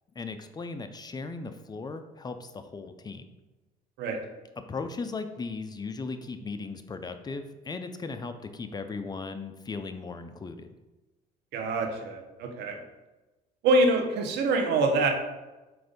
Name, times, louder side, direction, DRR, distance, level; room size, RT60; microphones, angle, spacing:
voice 1, 0.2-3.3 4.7-10.7, left 4 dB, 25° left, 8 dB, 0.5 m, -37 dB
voice 2, 11.5-12.8 13.6-15.1, right 2 dB, 85° right, 3 dB, 1.1 m, -25 dB
7.7 x 2.6 x 5.2 m, 1.1 s
cardioid pair, 110°, 17 cm